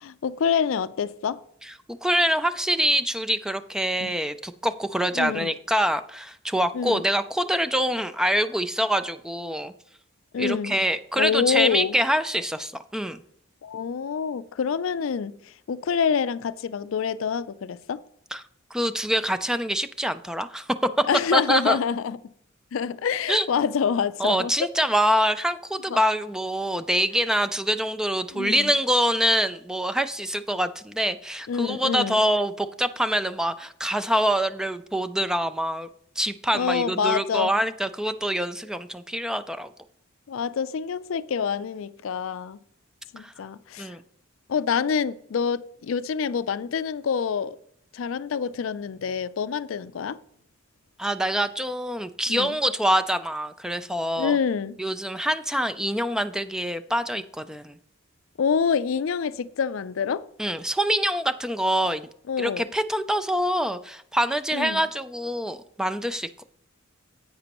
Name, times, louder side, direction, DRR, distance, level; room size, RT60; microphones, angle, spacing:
voice 1, 0.0-1.4 4.0-4.1 5.1-5.5 6.7-7.0 10.3-10.8 11.1-12.0 13.6-18.0 21.1-22.3 22.7-24.5 25.9-26.0 28.3-28.7 31.5-32.2 36.5-37.5 40.3-42.6 43.1-44.0 44.5-47.6 47.9-50.2 52.3-52.6 54.2-54.8 58.4-60.2 62.3-62.6 64.5-64.8, left 6 dB, 70° left, 0.4 m, -26 dB
voice 2, 2.0-9.7 10.4-13.2 18.3-18.4 18.7-20.7 21.0-21.1 21.3-21.8 23.3-23.5 24.2-35.9 36.2-39.7 43.2-43.3 43.8-44.0 51.0-54.4 54.8-57.8 60.4-62.1 62.4-66.4, equal, 5° right, 0.3 m, -25 dB
10.0 x 8.3 x 3.0 m
head